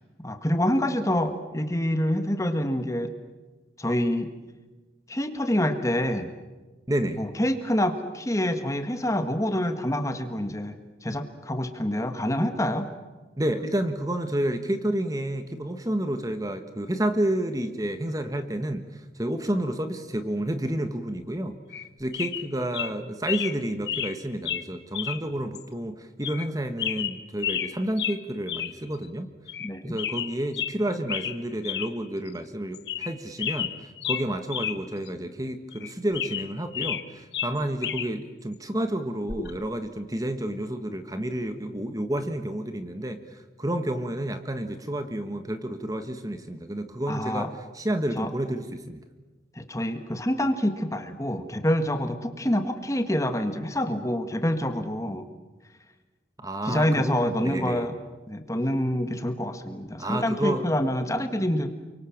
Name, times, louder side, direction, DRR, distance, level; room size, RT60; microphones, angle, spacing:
voice 1, 0.2-3.1 3.8-4.3 5.1-6.3 7.2-12.9 29.6-30.0 47.1-47.5 48.2-48.3 49.5-55.3 56.6-57.9 58.3-61.7, left 1 dB, 15° left, 8 dB, 1.6 m, -26 dB
voice 2, 6.9-7.2 13.4-21.6 22.0-29.3 29.8-49.0 56.4-57.9 60.0-60.6, right 1 dB, 20° right, 8 dB, 1.4 m, -30 dB
sound 1, 21.7-21.9 22.1-22.5 22.7-22.9 23.3-23.6 23.9-24.1 24.5-24.6 24.9-25.2 25.5-25.6 26.2-26.5 26.8-27.7 28.0-28.2 28.5-28.7 29.0-29.1 29.5-29.7 30.0-30.7 31.1-31.4 31.6-31.9 32.3-32.4 32.7-33.1 33.4-34.8 35.1-35.2 35.7-37.0 37.3-38.1 39.3-39.5, left 10 dB, 60° left, 1.3 m, -31 dB
28.5 x 24.5 x 7.3 m, 1.2 s
head